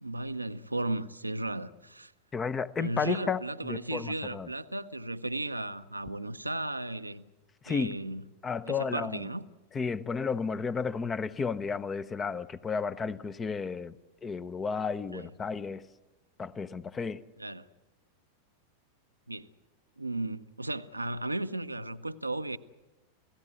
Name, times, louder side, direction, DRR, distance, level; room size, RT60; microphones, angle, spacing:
voice 1, 0.0-2.1 2.8-7.2 7.7-8.2 8.7-9.5 15.1-15.3 17.4-17.7 19.3-19.5 20.0-22.6, right 2 dB, 85° right, 0.7 m, -35 dB
voice 2, 2.3-4.5 7.6-8.0 8.4-9.3 9.7-13.9 14.2-15.9 16.4-17.2, left 5 dB, 20° left, 0.8 m, -33 dB
29.5 x 17.0 x 7.9 m
figure-of-eight pair, 90°, 0 cm